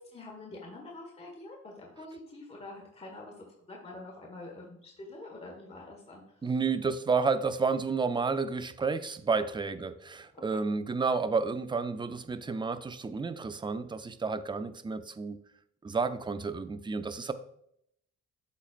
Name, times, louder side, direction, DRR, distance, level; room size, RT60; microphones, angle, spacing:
voice 1, 0.1-6.2 10.3-10.4, left 2 dB, 20° left, -1 dB, 1.5 m, -46 dB
voice 2, 6.4-15.4 15.8-17.3, right 4 dB, 15° right, 11 dB, 0.5 m, -31 dB
12.5 x 4.2 x 2.5 m, 0.73 s
cardioid pair, 90°, 30 cm